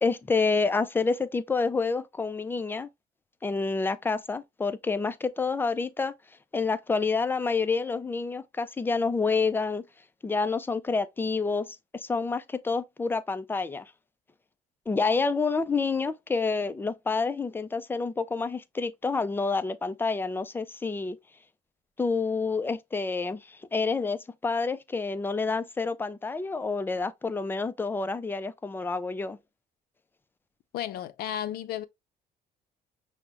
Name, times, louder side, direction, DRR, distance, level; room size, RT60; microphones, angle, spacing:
voice 1, 0.0-2.9 3.4-6.1 6.5-9.8 10.2-13.8 14.9-21.2 22.0-29.4, left 4 dB, 10° left, 0.4 m, -28 dB
voice 2, 30.7-31.9, left 10 dB, 65° left, 0.5 m, -33 dB
5.9 x 2.1 x 3.3 m
cardioid pair, 110°, 17 cm